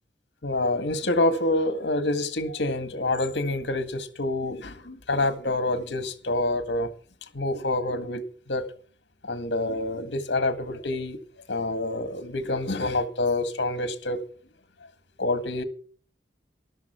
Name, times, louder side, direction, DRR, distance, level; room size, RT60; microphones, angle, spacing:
voice 1, 0.4-6.9 7.3-8.7 9.2-11.2 11.5-14.2 15.2-15.6, left 2 dB, 75° left, 1.8 m, -27 dB
13.5 x 12.0 x 4.6 m
head